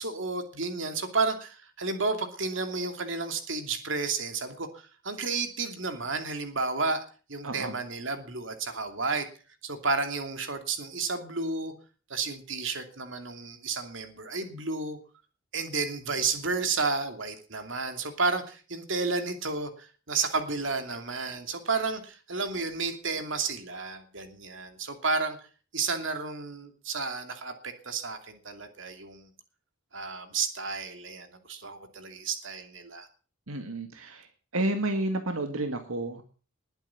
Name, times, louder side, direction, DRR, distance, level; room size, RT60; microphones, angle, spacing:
voice 1, 0.0-7.0 7.3-9.3 9.6-11.7 12.1-15.0 15.5-25.4 25.7-29.3 29.9-33.1, right 4 dB, 60° right, 7 dB, 2.8 m, -32 dB
voice 2, 7.4-7.8 33.5-34.3 34.5-36.2, right 1 dB, 80° right, 6 dB, 2.0 m, -30 dB
20.5 x 9.1 x 7.1 m, 0.40 s
head